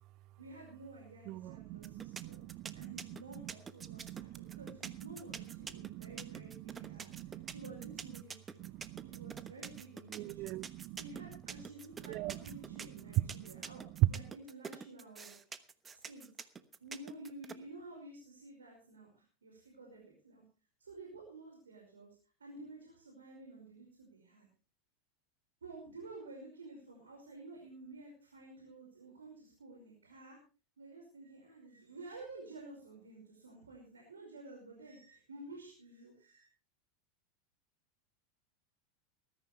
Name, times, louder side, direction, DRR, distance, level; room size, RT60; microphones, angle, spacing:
voice 1, 0.4-2.4 2.7-8.7 9.0-10.6 10.9-15.3 15.9-16.3 16.8-20.4 20.8-22.1 22.4-24.5 25.6-30.4 30.8-36.4, right 2 dB, 75° right, 5.2 m, -52 dB
voice 2, 1.3-2.9 3.9-4.6 5.7-6.4 6.8-7.5 8.7-9.3 10.1-11.0 12.1-12.4 13.3-13.4, right 17 dB, 45° right, 0.6 m, -45 dB
sound 1, 1.8-17.5, right 6 dB, 20° right, 1.1 m, -46 dB
20.0 x 13.5 x 3.3 m
figure-of-eight pair, 85°, 0 cm